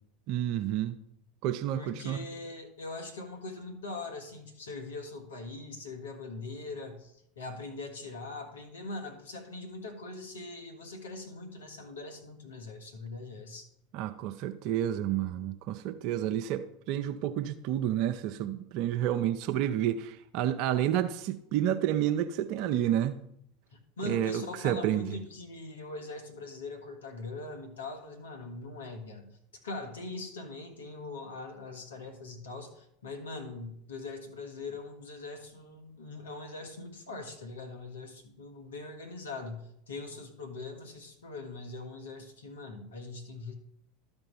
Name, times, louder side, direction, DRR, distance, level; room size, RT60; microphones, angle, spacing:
voice 1, 0.3-1.0 1.4-2.3 13.9-23.2 24.0-25.2, right 11 dB, 55° right, 8 dB, 0.5 m, -30 dB
voice 2, 1.7-13.7 23.7-29.3 29.6-43.5, left 3 dB, 80° left, 4 dB, 1.7 m, -42 dB
12.5 x 4.4 x 5.5 m, 0.74 s
hypercardioid pair, 85°, 0 cm